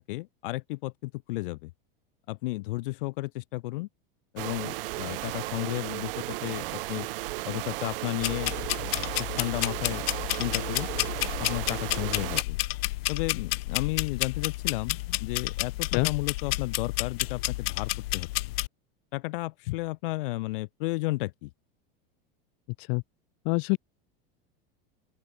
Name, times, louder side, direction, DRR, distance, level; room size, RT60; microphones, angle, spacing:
voice 1, 0.0-1.7 2.3-3.9 4.3-7.1 7.4-8.5 9.0-10.0 10.4-10.9 11.4-12.6 13.1-18.3 19.1-21.5, left 21 dB, 60° left, 2.0 m, -33 dB
sound 1, 4.4-12.4, right 19 dB, 65° right, 3.1 m, -35 dB
sound 2, 8.2-18.7, left 19 dB, 80° left, 0.6 m, -31 dB
voice 2, 23.4-23.8, left 39 dB, 40° left, 1.0 m, -25 dB
open air
supercardioid pair, 165°, 29 cm